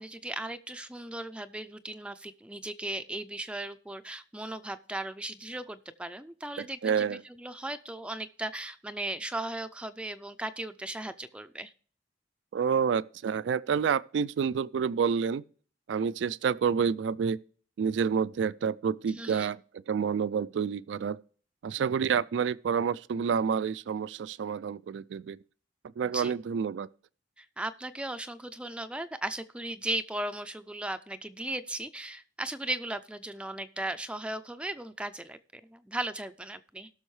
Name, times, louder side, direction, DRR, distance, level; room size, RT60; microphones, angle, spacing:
voice 1, 0.0-11.7 19.1-19.5 26.0-26.3 27.4-36.9, right 1 dB, 5° right, 0.4 m, -37 dB
voice 2, 6.6-7.2 12.5-15.4 15.9-17.4 17.8-21.2 21.6-25.4 26.0-26.9, right 6 dB, 80° right, 0.3 m, -29 dB
18.0 x 6.2 x 3.2 m
head